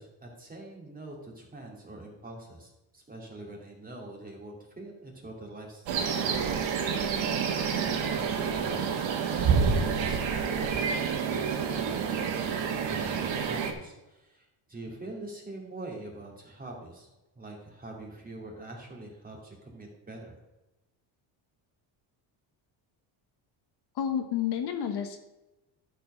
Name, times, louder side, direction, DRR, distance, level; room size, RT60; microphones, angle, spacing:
voice 1, 0.0-6.7 7.8-17.1 17.4-20.4, right 2 dB, 20° right, -1 dB, 2.6 m, -44 dB
sound 1, 5.9-13.7, right 6 dB, 70° right, 1.6 m, -28 dB
voice 2, 23.9-25.2, left 9 dB, 55° left, 6 dB, 1.1 m, -30 dB
11.5 x 4.6 x 6.2 m, 0.99 s
cardioid pair, 125°, 47 cm